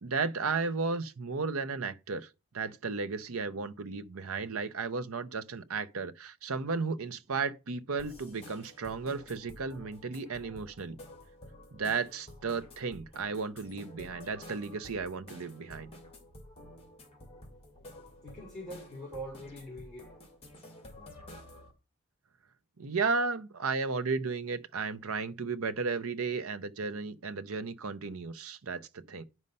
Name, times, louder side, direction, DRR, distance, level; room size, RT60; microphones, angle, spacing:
voice 1, 0.0-2.3 2.5-11.0 11.7-15.9 22.8-29.2, right 4 dB, 70° right, 0.7 m, -34 dB
sound 1, 8.0-21.7, left 1 dB, 25° left, 2.2 m, -51 dB
voice 2, 18.0-20.1, right 1 dB, 5° left, 3.1 m, -44 dB
9.6 x 5.3 x 5.4 m
head